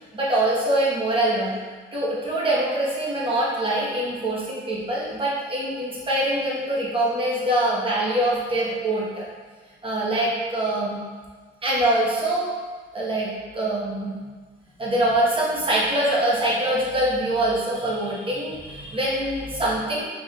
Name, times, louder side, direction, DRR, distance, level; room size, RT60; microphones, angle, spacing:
voice 1, 0.1-1.6 1.9-9.2 9.8-11.0 11.6-12.5 12.9-14.1 14.8-20.0, right 1 dB, 25° right, -6 dB, 1.3 m, -24 dB
4.8 x 3.8 x 2.4 m, 1.5 s
cardioid pair, 90°, 20 cm